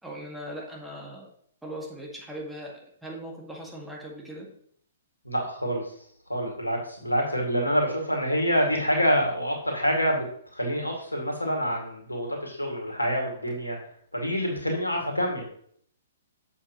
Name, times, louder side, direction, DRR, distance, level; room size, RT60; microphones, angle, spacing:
voice 1, 0.0-1.3 1.6-4.5, equal, 5° right, -2 dB, 1.9 m, -39 dB
voice 2, 5.2-5.9 6.3-10.2 10.5-13.8 14.1-15.4, equal, 90° left, 0 dB, 2.2 m, -26 dB
7.8 x 7.2 x 3.1 m, 0.63 s
figure-of-eight pair, 120°, 0 cm